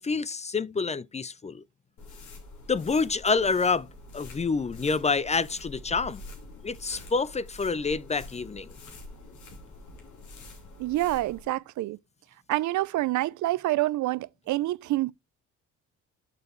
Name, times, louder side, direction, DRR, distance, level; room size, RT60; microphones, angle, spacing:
voice 1, 0.0-1.6 2.7-3.9 4.1-6.2 6.6-8.7, left 4 dB, 20° left, 0.5 m, -27 dB
sound 1, 2.0-11.5, left 2 dB, 75° left, 3.1 m, -46 dB
voice 2, 10.8-12.0 12.5-15.1, right 17 dB, 75° right, 0.5 m, -27 dB
6.9 x 6.8 x 3.1 m
cardioid pair, 90°, 30 cm